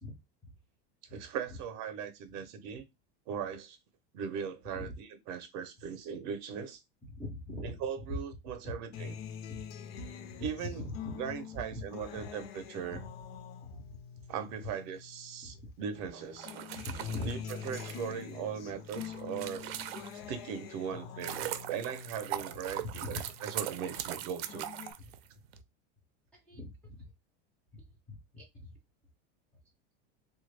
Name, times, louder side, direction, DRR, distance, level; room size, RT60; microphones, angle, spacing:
voice 1, 1.1-2.9 3.3-3.8 4.1-4.9 5.3-6.8 7.6-9.1 10.4-10.8 11.1-13.0 14.3-16.5 17.2-24.7, right 7 dB, 45° right, 0.5 m, -39 dB
voice 2, 7.0-8.2 8.6-8.7 9.5-10.1 10.6-11.3 11.7-11.9 12.2-12.3 12.9-13.0 13.6-14.0 15.4-15.7 16.7-17.4 20.2-20.3 22.8-23.2 25.0-25.1 26.3-27.1 27.7-28.8, left 2 dB, 5° left, 0.3 m, -43 dB
Acoustic guitar, 8.9-15.6 15.9-23.6 24.0-24.9, left 8 dB, 85° left, 0.6 m, -45 dB
sound 1, 16.3-20.4 20.9-25.6, right 12 dB, 90° right, 0.5 m, -40 dB
3.2 x 2.2 x 3.2 m
supercardioid pair, 175°, 30 cm